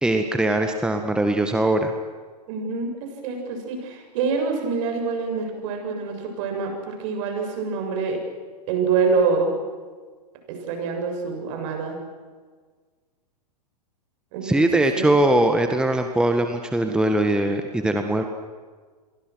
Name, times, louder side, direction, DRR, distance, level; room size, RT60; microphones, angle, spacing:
voice 1, 0.0-1.9 14.4-18.2, right 1 dB, 5° right, 5 dB, 1.7 m, -21 dB
voice 2, 2.5-2.9 3.2-8.2 8.7-9.5 10.5-12.0 14.3-14.7 14.9-15.1, right 5 dB, 50° right, 3 dB, 7.6 m, -26 dB
29.0 x 23.5 x 6.4 m, 1.5 s
figure-of-eight pair, 105°, 21 cm